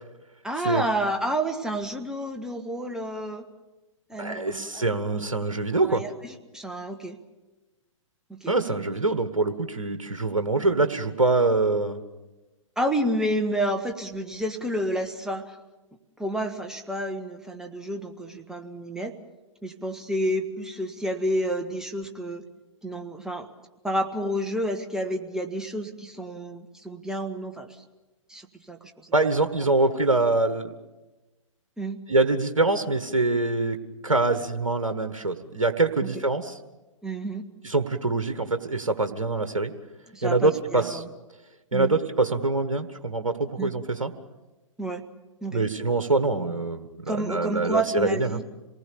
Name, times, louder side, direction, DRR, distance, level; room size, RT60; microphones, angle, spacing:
voice 1, 0.4-3.5 4.1-4.9 5.2-5.3 5.8-7.2 8.3-8.8 12.8-15.6 16.2-19.1 19.6-22.4 22.8-23.5 23.8-27.7 28.3-28.8 29.0-29.1 31.8-32.0 36.0-36.1 37.0-37.4 40.1-41.1 41.7-42.0 43.6-43.7 44.8-45.0 45.4-45.6 47.1-48.4, right 1 dB, 5° right, 4 dB, 1.2 m, -30 dB
voice 2, 4.2-6.0 8.5-12.0 29.1-30.7 32.1-33.8 34.0-36.6 37.6-39.7 40.2-41.0 41.7-44.1 45.5-48.4, right 3 dB, 70° right, 9 dB, 1.5 m, -24 dB
27.0 x 19.5 x 6.9 m, 1.1 s
figure-of-eight pair, 115°, 17 cm